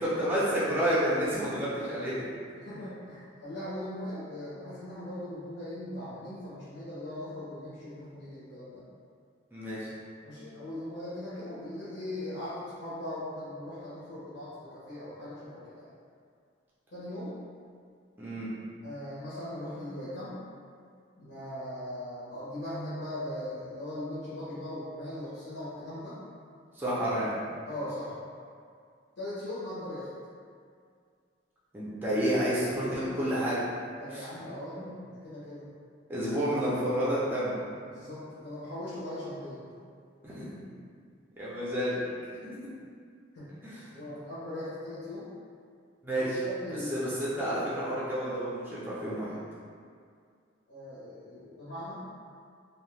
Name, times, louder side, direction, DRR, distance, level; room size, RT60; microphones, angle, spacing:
voice 1, 0.0-2.1 9.5-9.9 18.2-18.5 26.8-27.4 31.7-33.6 34.1-34.3 34.8-34.9 36.1-37.6 40.2-40.6 41.4-42.0 43.6-43.8 46.0-46.4 46.9-49.3, equal, 10° right, -9 dB, 0.4 m, -30 dB
voice 2, 2.5-8.8 10.2-15.9 16.9-17.3 18.8-20.4 21.2-26.2 27.7-28.2 29.2-30.1 33.9-35.6 37.8-39.7 43.3-43.5 43.9-45.3 46.4-47.1 50.7-52.0, left 1 dB, 70° left, -11 dB, 0.7 m, -39 dB
2.7 x 2.1 x 3.1 m, 2.2 s
head